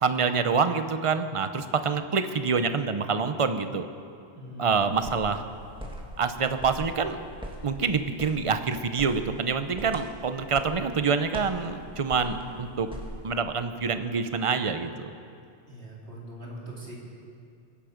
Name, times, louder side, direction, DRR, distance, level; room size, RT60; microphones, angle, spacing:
voice 1, 0.0-3.9 4.6-5.4 6.2-7.2 7.6-12.9 13.2-15.1, right 5 dB, 30° right, 9 dB, 0.7 m, -26 dB
voice 2, 4.3-4.9 15.7-16.9, right 2 dB, 55° right, -4 dB, 3.6 m, -41 dB
sound 1, 4.7-13.3, equal, 5° right, 1.6 m, -43 dB
23.5 x 10.5 x 5.2 m, 2.4 s
omnidirectional pair, 1.3 m